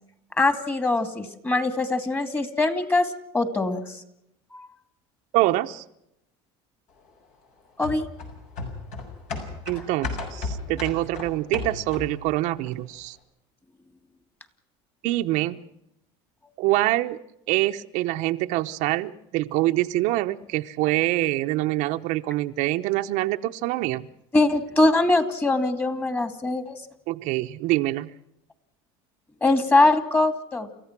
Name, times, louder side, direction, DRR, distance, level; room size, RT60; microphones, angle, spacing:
voice 1, 0.4-3.1 3.3-4.0 4.5-4.7 7.8-8.1 24.3-26.8 29.4-30.7, left 2 dB, 15° left, 9 dB, 2.6 m, -22 dB
voice 2, 5.3-5.8 9.7-13.2 15.0-15.6 16.6-17.2 17.5-24.1 27.1-28.1, right 17 dB, 70° right, 7 dB, 0.9 m, -25 dB
sound 1, 7.8-12.3 12.7-12.8, left 3 dB, 60° left, 6.7 m, -34 dB
29.5 x 15.0 x 6.1 m, 0.80 s
supercardioid pair, 115°, 13 cm